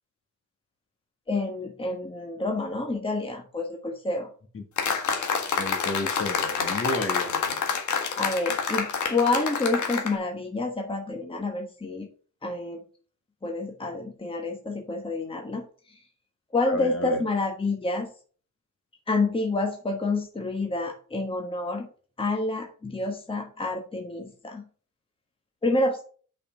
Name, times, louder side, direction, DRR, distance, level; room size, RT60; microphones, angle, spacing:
voice 1, 1.3-4.3 8.1-12.1 12.4-12.8 13.4-16.0 16.5-18.1 19.1-21.9 22.2-24.6 25.6-26.0, left 2 dB, 15° left, 2 dB, 1.3 m, -28 dB
sound 1, 4.8-10.1, left 6 dB, 65° left, 1.7 m, -28 dB
voice 2, 5.6-7.6 16.7-17.2, left 2 dB, 45° left, 4 dB, 2.0 m, -31 dB
6.6 x 5.7 x 6.0 m, 0.42 s
cardioid pair, 120°, 31 cm